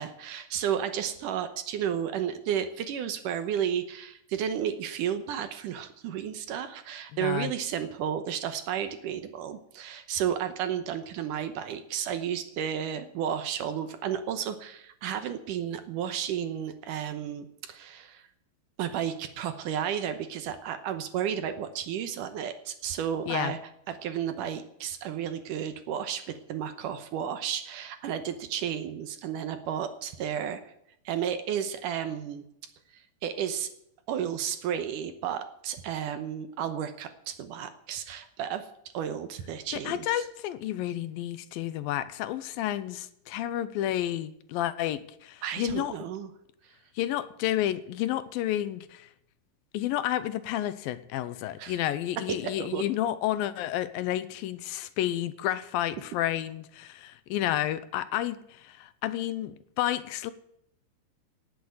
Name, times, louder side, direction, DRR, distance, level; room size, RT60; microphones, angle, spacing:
voice 1, 0.0-18.3 18.8-23.6 23.9-30.7 31.1-32.4 32.9-33.7 34.1-38.7 38.9-40.2 45.4-46.3 46.6-46.7 51.6-51.8 52.3-52.8, right 9 dB, 70° right, 10 dB, 2.3 m, -32 dB
voice 2, 7.2-7.5 23.3-23.5 39.7-45.9 47.0-49.1 49.7-60.3, left 12 dB, 80° left, 14 dB, 2.5 m, -31 dB
18.0 x 8.1 x 7.9 m, 0.75 s
omnidirectional pair, 4.2 m